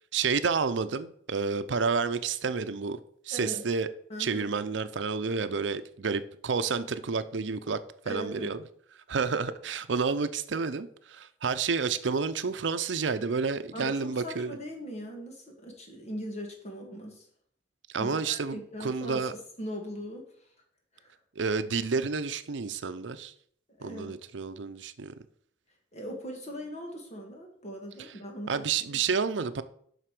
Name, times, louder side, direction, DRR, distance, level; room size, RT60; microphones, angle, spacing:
voice 1, 0.1-3.0 3.3-3.9 4.2-7.8 8.1-8.6 9.1-14.6 17.9-19.3 21.4-23.3 23.8-25.1 28.5-29.6, right 5 dB, 80° right, 0.6 m, -30 dB
voice 2, 3.3-3.6 4.1-4.5 8.1-8.6 13.7-17.3 18.0-20.3 20.9-21.1 23.8-24.2 25.9-28.5 28.9-29.0, equal, 40° left, 2.2 m, -40 dB
8.0 x 5.8 x 6.0 m
head